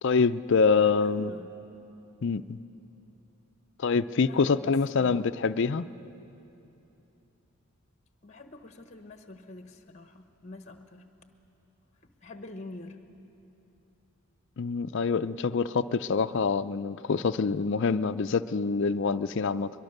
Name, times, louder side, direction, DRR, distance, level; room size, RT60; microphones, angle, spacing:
voice 1, 0.0-1.3 2.2-2.6 3.8-5.9 14.6-19.7, left 5 dB, 55° left, 12 dB, 0.5 m, -25 dB
voice 2, 0.7-1.5 4.3-5.3 8.2-11.0 12.2-13.0, left 2 dB, 30° left, 7 dB, 1.0 m, -46 dB
22.5 x 22.0 x 6.6 m, 3.0 s
head